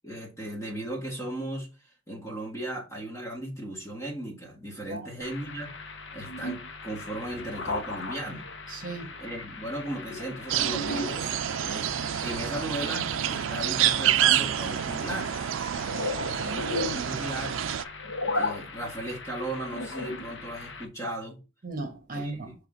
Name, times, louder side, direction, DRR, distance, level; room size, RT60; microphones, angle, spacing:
voice 1, 0.0-1.7 2.1-5.7 6.1-8.5 9.2-11.3 11.6-11.9 12.2-15.3 16.9-17.6 18.3-21.4 22.1-22.5, right 1 dB, 15° left, 1.6 m, -36 dB
sound 1, 5.2-20.9, left 2 dB, 75° left, 1.0 m, -37 dB
voice 2, 8.7-9.1 16.4-17.1 21.6-22.5, right 2 dB, 45° right, 1.1 m, -37 dB
sound 2, 10.5-17.8, right 10 dB, 85° right, 0.4 m, -28 dB
7.2 x 3.3 x 4.0 m
head